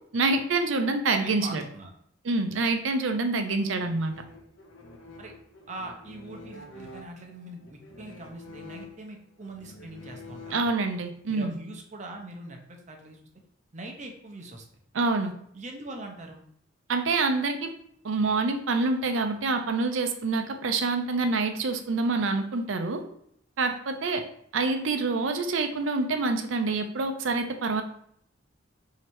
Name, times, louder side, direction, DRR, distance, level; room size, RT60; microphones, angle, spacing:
voice 1, 0.1-1.6 2.2-4.1 10.5-11.6 14.9-15.3 16.9-17.7 18.0-23.0 23.6-24.2 24.5-27.8, right 3 dB, 80° right, 7 dB, 0.5 m, -26 dB
voice 2, 1.1-1.9 5.2-5.3 5.7-10.7 11.3-13.2 13.7-14.6 15.5-16.4, right 2 dB, 40° right, 3 dB, 0.7 m, -42 dB
sound 1, 3.6-11.1, left 2 dB, 80° left, 0.7 m, -47 dB
3.2 x 2.8 x 4.5 m, 0.68 s
head